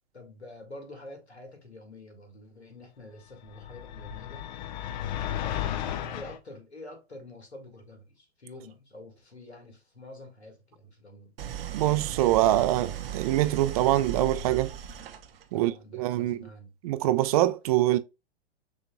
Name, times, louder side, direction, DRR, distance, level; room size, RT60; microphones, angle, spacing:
voice 1, 0.1-4.5 5.4-11.3 11.7-11.9 12.7-12.9 15.5-16.7, left 1 dB, 85° left, 1.8 m, -47 dB
sound 1, 3.5-6.4, left 11 dB, 45° left, 0.5 m, -34 dB
Idling, 11.4-15.6, right 8 dB, 65° right, 0.7 m, -37 dB
voice 2, 11.7-14.8 15.5-16.4 16.8-18.0, right 14 dB, 35° right, 0.4 m, -24 dB
6.1 x 2.9 x 2.2 m
figure-of-eight pair, 105°, 32 cm